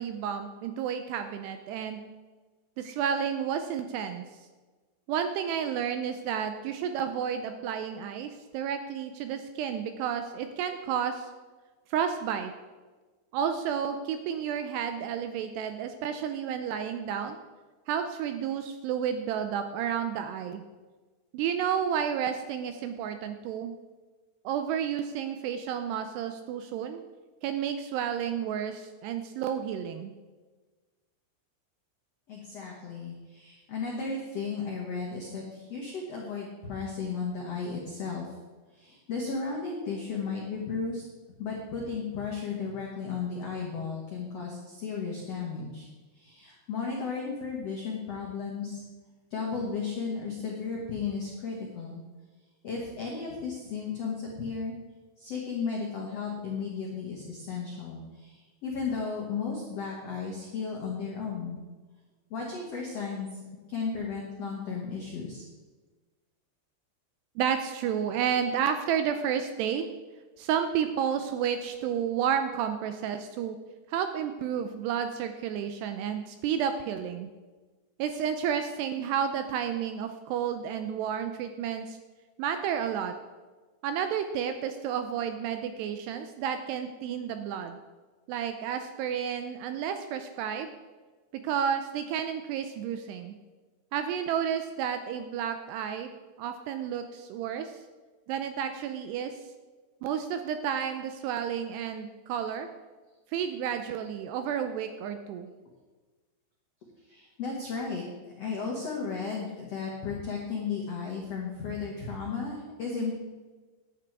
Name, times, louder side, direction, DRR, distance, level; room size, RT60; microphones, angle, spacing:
voice 1, 0.0-2.0 2.8-4.3 5.1-11.3 11.9-12.5 13.3-17.4 17.9-20.6 21.3-23.8 24.4-27.0 27.4-30.1 67.4-69.9 70.4-73.6 73.9-77.3 78.0-82.0 82.4-83.2 83.8-87.8 88.3-90.7 91.4-93.4 93.9-96.1 96.4-97.7 98.3-99.4 100.0-102.7 103.3-105.5, right 8 dB, 85° right, 8 dB, 2.4 m, -31 dB
voice 2, 32.3-38.3 38.7-41.0 41.4-45.9 46.1-48.8 49.3-52.0 52.6-54.8 55.2-61.6 62.3-63.4 63.7-65.4 107.0-113.1, left 5 dB, 85° left, -2 dB, 1.4 m, -34 dB
11.0 x 9.0 x 4.6 m, 1.3 s
omnidirectional pair, 5.3 m